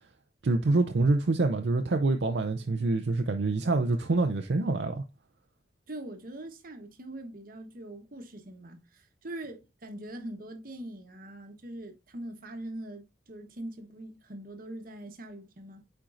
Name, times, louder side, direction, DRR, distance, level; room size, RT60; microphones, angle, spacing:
voice 1, 0.4-5.0, right 3 dB, 65° right, 0.5 m, -26 dB
voice 2, 5.9-15.8, right 1 dB, 50° right, 1.1 m, -42 dB
8.7 x 4.5 x 2.5 m
head